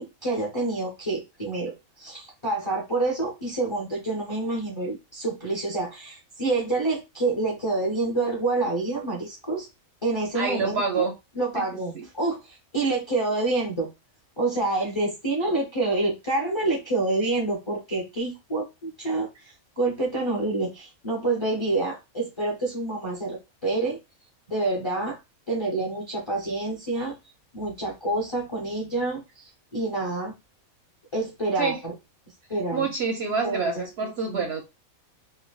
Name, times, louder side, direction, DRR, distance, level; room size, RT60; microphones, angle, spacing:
voice 1, 0.0-9.7 10.0-11.1 11.4-13.9 14.4-24.0 24.5-25.2 25.5-27.1 27.5-30.3 31.1-31.9 32.5-32.9 33.4-34.4, right 2 dB, 30° left, -3 dB, 0.5 m, -27 dB
voice 2, 10.3-11.1 12.0-12.1 31.6-31.8 32.7-34.6, right 5 dB, 65° right, 3 dB, 0.7 m, -27 dB
3.2 x 2.1 x 2.3 m, 0.24 s
omnidirectional pair, 1.5 m